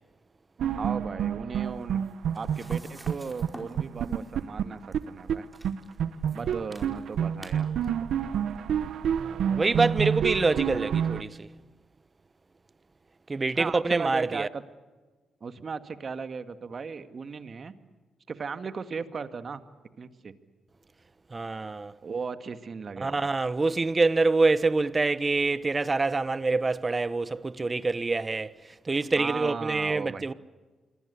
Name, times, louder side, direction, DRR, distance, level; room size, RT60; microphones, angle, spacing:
sound 1, 0.6-3.1 3.4-3.5 3.8-5.4 5.6-5.7 6.0-11.2, right 8 dB, 75° right, 1.0 m, -28 dB
voice 1, 0.8-2.0 2.3-4.8 5.1-5.5 6.3-7.7 13.5-14.6 15.4-17.7 18.3-19.6 20.0-20.3 22.0-23.3 29.2-30.3, right 5 dB, 50° right, 2.0 m, -36 dB
sound 2, 1.6-9.9, right 1 dB, 5° right, 5.0 m, -52 dB
voice 2, 9.2-11.5 13.3-14.5 21.3-22.0 23.0-28.5 28.8-30.3, right 3 dB, 30° right, 1.2 m, -26 dB
27.0 x 22.5 x 8.4 m
supercardioid pair, 55°, 0 cm